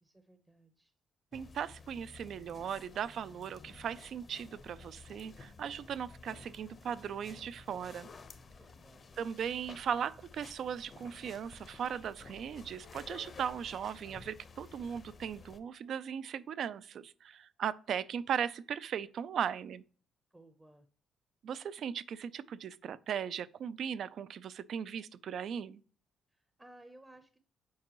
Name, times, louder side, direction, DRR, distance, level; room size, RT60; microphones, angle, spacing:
voice 1, 0.0-0.9 8.6-9.0 20.3-20.9 26.3-27.4, right 1 dB, 15° right, 0.6 m, -58 dB
sound 1, 1.3-15.6, left 4 dB, 45° left, 0.7 m, -53 dB
voice 2, 1.3-8.1 9.2-19.8 21.4-25.8, right 8 dB, 65° right, 0.3 m, -38 dB
sound 2, 12.8-16.3 16.7-16.8, left 6 dB, 85° left, 1.7 m, -67 dB
7.4 x 4.5 x 2.9 m
cardioid pair, 90°, 0 cm